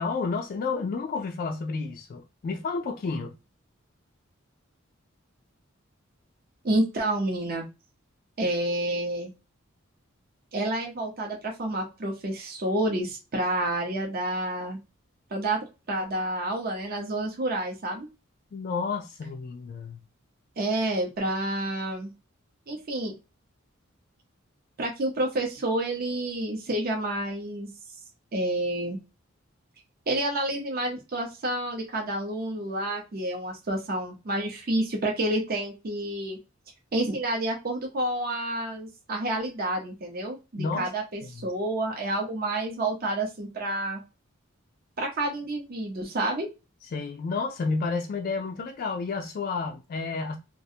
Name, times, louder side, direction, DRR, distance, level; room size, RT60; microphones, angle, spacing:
voice 1, 0.0-3.3 18.5-20.0 40.6-40.9 41.2-41.5 46.9-50.4, left 4 dB, 45° left, 0.3 m, -31 dB
voice 2, 6.6-7.7 8.4-9.3 10.5-14.8 15.3-15.6 15.9-18.1 20.6-22.1 22.7-23.1 24.8-27.7 28.3-29.0 30.1-36.4 36.9-44.0 45.0-46.5, right 1 dB, 45° right, 0.6 m, -29 dB
2.4 x 2.0 x 2.7 m
head